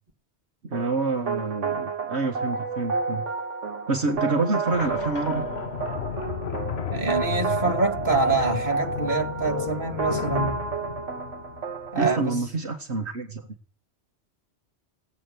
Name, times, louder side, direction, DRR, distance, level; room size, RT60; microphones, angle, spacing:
voice 1, 0.6-3.2 3.9-5.4 12.0-13.4, right 3 dB, 65° right, 1.9 m, -27 dB
sound 1, 0.7-12.3, right 5 dB, 85° right, 1.6 m, -30 dB
sound 2, 4.7-12.1, left 7 dB, 60° left, 1.2 m, -33 dB
voice 2, 6.9-10.6 11.9-12.4, right 3 dB, 40° right, 2.5 m, -26 dB
17.0 x 8.7 x 9.4 m
omnidirectional pair, 1.2 m